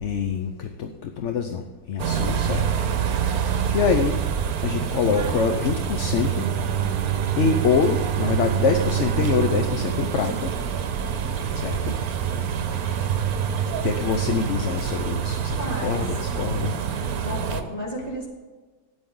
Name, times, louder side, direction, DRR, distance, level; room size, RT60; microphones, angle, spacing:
voice 1, 0.0-2.6 3.7-4.1 4.6-6.5 7.4-10.5 11.6-11.9 13.8-16.7, left 6 dB, 55° left, 7 dB, 0.9 m, -25 dB
sound 1, 2.0-17.6, right 7 dB, 70° right, 1.3 m, -26 dB
Bowed string instrument, 6.4-11.3, right 13 dB, 90° right, 1.1 m, -28 dB
voice 2, 15.6-16.0 17.2-18.3, equal, 25° left, -2 dB, 2.7 m, -32 dB
13.0 x 9.4 x 3.8 m, 1.3 s
omnidirectional pair, 1.7 m